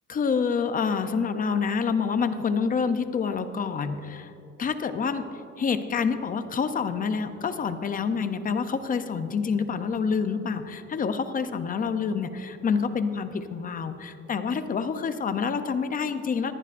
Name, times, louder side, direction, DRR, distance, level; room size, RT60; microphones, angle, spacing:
voice 1, 0.1-4.3 4.6-5.3 5.6-16.5, left 5 dB, 30° left, 10 dB, 0.5 m, -27 dB
20.0 x 15.0 x 2.5 m, 2.7 s
cardioid pair, 175°, 29 cm